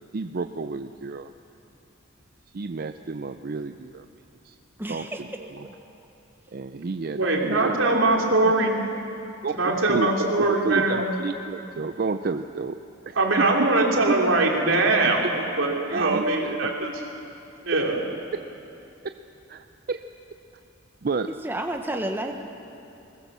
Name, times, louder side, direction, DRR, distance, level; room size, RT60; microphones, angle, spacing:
voice 1, 0.1-1.3 2.5-4.0 4.4-4.6 4.9-5.7 6.5-7.8 8.4-8.5 9.4-9.5 9.9-12.8 13.1-13.5 15.9-16.6 18.3-18.4 19.0-19.1 19.5-20.0 21.0-21.3, right 4 dB, 50° right, 9 dB, 0.5 m, -30 dB
voice 2, 4.8-5.2 21.4-22.3, right 1 dB, 10° right, 4 dB, 1.1 m, -30 dB
voice 3, 7.1-8.7 9.6-11.1 13.1-16.9 17.6-18.0, right 2 dB, 90° right, 0 dB, 3.2 m, -22 dB
21.0 x 19.5 x 7.3 m, 2.8 s
head